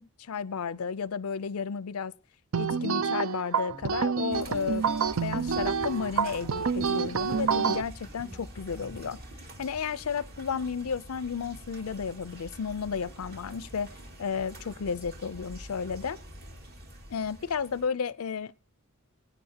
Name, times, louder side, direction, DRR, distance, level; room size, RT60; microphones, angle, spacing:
voice 1, 0.0-2.1 2.6-4.9 5.2-9.2 9.6-13.9 14.2-16.2 17.1-18.6, left 6 dB, 75° left, 0.5 m, -33 dB
sound 1, 2.5-7.8, right 6 dB, 65° right, 0.6 m, -28 dB
sound 2, 3.7-9.4, equal, 25° right, 4.9 m, -48 dB
sound 3, 4.3-17.9, right 1 dB, 45° right, 2.5 m, -47 dB
22.0 x 9.2 x 2.8 m
head